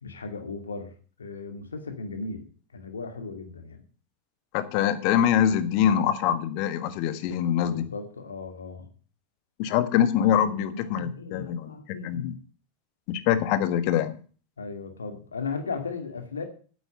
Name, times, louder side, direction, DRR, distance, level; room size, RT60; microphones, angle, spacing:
voice 1, 0.0-2.4 2.7-3.8 7.7-8.9 10.4-12.4 14.6-16.4, left 4 dB, 85° left, 6 dB, 2.2 m, -36 dB
voice 2, 4.5-7.9 9.6-11.7 12.0-12.3 13.1-14.2, left 10 dB, 55° left, 12 dB, 1.5 m, -24 dB
9.4 x 8.1 x 7.2 m, 0.41 s
hypercardioid pair, 90°, 0 cm